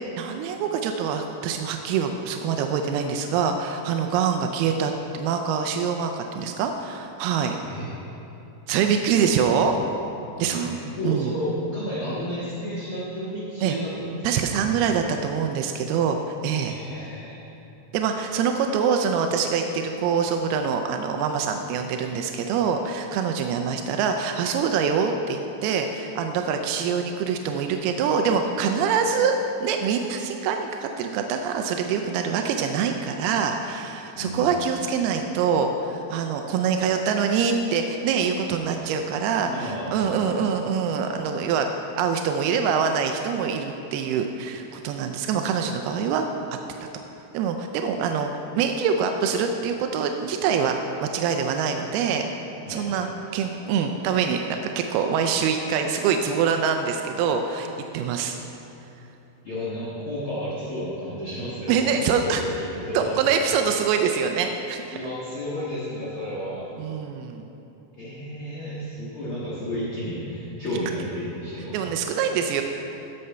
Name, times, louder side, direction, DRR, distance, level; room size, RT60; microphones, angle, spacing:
voice 1, 0.2-7.6 8.7-9.8 10.4-10.8 11.1-11.3 13.6-13.8 14.2-16.8 17.9-41.7 42.0-46.3 47.3-48.3 48.6-52.3 52.7-53.1 53.3-57.7 57.9-58.4 61.7-62.4 62.9-65.0 66.8-67.5 71.7-72.6, right 6 dB, 90° right, 5 dB, 2.6 m, -25 dB
voice 2, 10.9-14.2 16.6-17.5 34.1-34.5 39.4-40.4 52.7-52.9 59.4-63.1 64.9-66.7 68.0-71.8, equal, 45° left, -9 dB, 1.9 m, -32 dB
sound 1, 51.8-58.9, left 1 dB, 25° left, 1.3 m, -46 dB
15.0 x 6.5 x 5.5 m, 3.0 s
omnidirectional pair, 4.4 m